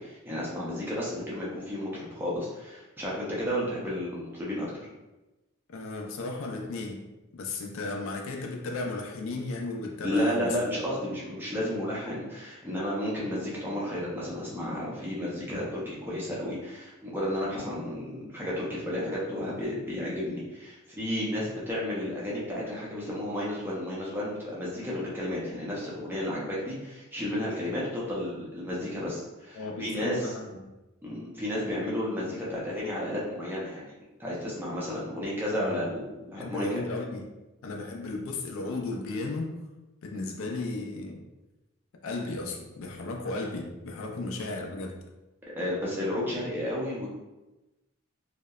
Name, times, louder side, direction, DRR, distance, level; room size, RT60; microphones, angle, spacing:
voice 1, 0.0-4.9 10.0-30.3 31.0-36.7 45.5-47.1, left 1 dB, 10° right, -6 dB, 0.5 m, -32 dB
voice 2, 5.7-7.0 7.3-10.6 29.6-30.7 35.6-35.9 36.4-37.3 37.6-39.5 40.0-41.2 42.0-45.0, left 2 dB, 65° left, 2 dB, 0.4 m, -35 dB
2.7 x 2.0 x 2.3 m, 1.0 s
head